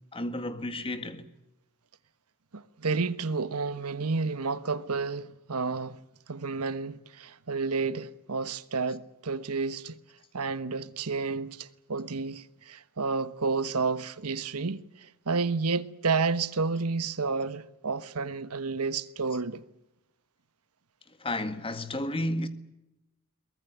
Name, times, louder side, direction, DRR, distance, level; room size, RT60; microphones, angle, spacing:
voice 1, 0.1-1.3 21.2-22.5, left 1 dB, 25° left, 1.9 m, -32 dB
voice 2, 2.5-6.0 6.3-10.0 10.3-19.6, right 4 dB, 85° right, 1.2 m, -31 dB
22.5 x 19.5 x 9.4 m
head